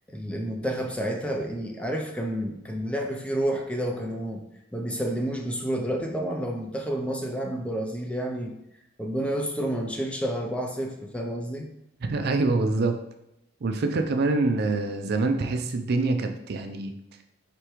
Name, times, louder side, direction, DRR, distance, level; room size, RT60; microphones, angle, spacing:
voice 1, 0.1-4.4 4.7-8.5 9.0-11.7, right 1 dB, 5° left, 2 dB, 0.4 m, -30 dB
voice 2, 12.1-13.0 13.6-16.9, right 3 dB, 55° right, 7 dB, 0.4 m, -25 dB
4.8 x 3.3 x 3.0 m, 0.83 s
head